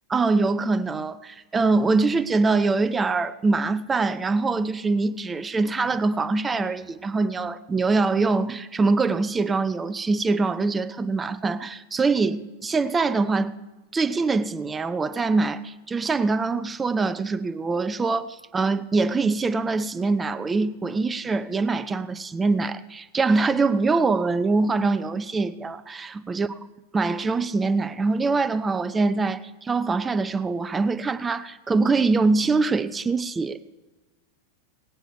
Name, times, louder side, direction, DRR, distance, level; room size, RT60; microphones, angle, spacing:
voice 1, 0.1-13.6 13.9-26.5 26.9-33.6, right 3 dB, 15° right, 0.6 m, -23 dB
18.0 x 9.1 x 4.5 m
figure-of-eight pair, 90°, 0 cm